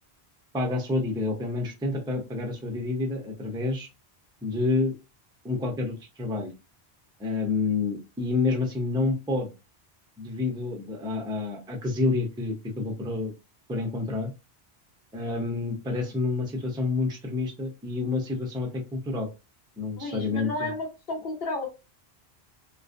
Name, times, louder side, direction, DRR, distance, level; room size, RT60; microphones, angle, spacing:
voice 1, 0.5-3.9 4.4-5.0 5.4-6.5 7.2-9.5 10.2-13.3 13.7-14.3 15.1-19.3 19.8-20.7, left 3 dB, 10° right, 1 dB, 0.3 m, -28 dB
voice 2, 20.0-21.7, left 2 dB, 65° left, 2 dB, 0.9 m, -32 dB
2.3 x 2.2 x 2.4 m, 0.27 s
omnidirectional pair, 1.1 m